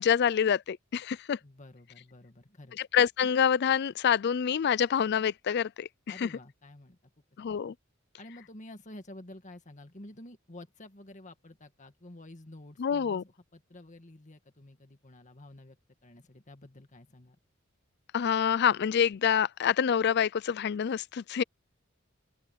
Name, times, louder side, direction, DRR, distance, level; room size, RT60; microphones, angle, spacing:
voice 1, 0.0-1.4 2.9-5.9 6.2-6.3 7.4-7.7 12.8-13.2 18.1-21.4, left 8 dB, 55° left, 0.4 m, -26 dB
voice 2, 1.4-2.8 6.1-7.0 8.2-15.8 16.0-17.4, left 1 dB, 40° left, 1.9 m, -50 dB
open air
head